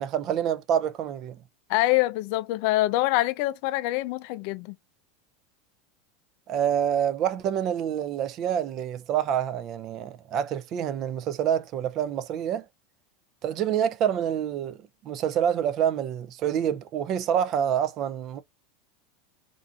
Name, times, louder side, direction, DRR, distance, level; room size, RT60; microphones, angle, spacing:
voice 1, 0.0-1.4 6.5-12.7 13.4-18.4, right 9 dB, 40° right, 0.3 m, -27 dB
voice 2, 1.7-4.7, left 17 dB, 60° left, 0.3 m, -25 dB
2.5 x 2.4 x 2.6 m
supercardioid pair, 130°, 0 cm